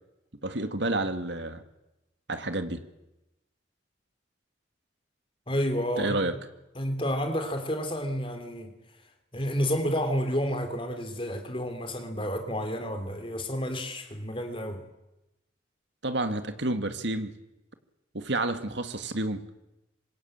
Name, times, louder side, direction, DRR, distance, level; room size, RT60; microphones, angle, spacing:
voice 1, 0.4-1.6 2.3-2.8 6.0-6.4 16.0-17.3 18.1-19.5, right 2 dB, 65° right, 2.2 m, -30 dB
voice 2, 5.5-6.2 6.7-8.7 9.3-14.8, equal, 25° left, 3.1 m, -30 dB
25.0 x 21.5 x 9.0 m
head